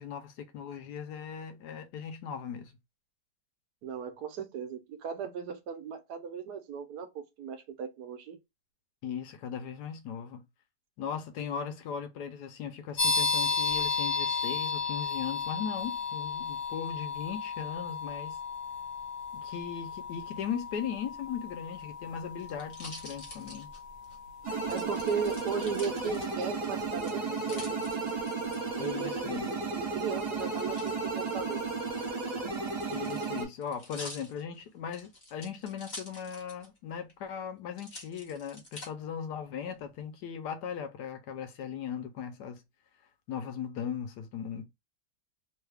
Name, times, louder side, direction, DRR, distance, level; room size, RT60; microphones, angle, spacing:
voice 1, 0.0-2.8 9.0-10.4 11.0-18.4 19.3-23.7 28.8-29.5 32.9-42.6 43.3-44.6, left 7 dB, 75° left, 1.2 m, -38 dB
voice 2, 3.8-8.4 24.7-27.8 28.8-31.6, right 6 dB, 75° right, 1.1 m, -36 dB
sound 1, 13.0-25.5, left 5 dB, 55° left, 1.3 m, -34 dB
sound 2, 21.7-24.2 24.7-26.7 27.0-28.6 30.4-30.9 31.9-36.8 37.1-37.2 37.8-38.9 39.5-40.0, left 2 dB, 30° left, 1.0 m, -47 dB
sound 3, 24.4-33.5, right 4 dB, 50° right, 1.4 m, -34 dB
3.2 x 2.3 x 3.3 m
omnidirectional pair, 1.8 m